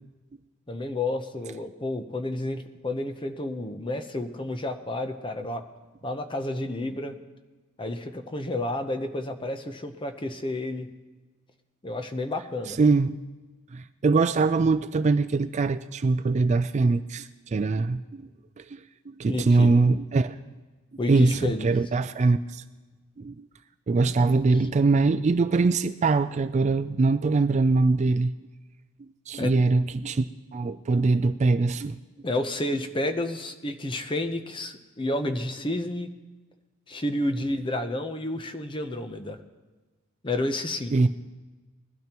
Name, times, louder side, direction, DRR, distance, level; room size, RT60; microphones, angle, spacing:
voice 1, 0.7-5.6 6.0-7.2 7.8-10.9 11.8-12.8 19.3-19.7 21.0-21.7 29.4-29.5 32.2-36.1 36.9-39.4 40.2-40.9, left 1 dB, 25° left, 7 dB, 0.8 m, -30 dB
voice 2, 12.7-13.1 13.7-18.2 18.6-18.8 19.1-20.3 21.1-22.6 23.2-23.4 23.9-28.3 29.3-30.3 30.5-32.0 40.9-41.1, right 3 dB, 35° right, 11 dB, 0.3 m, -22 dB
20.0 x 12.5 x 3.0 m, 1.3 s
head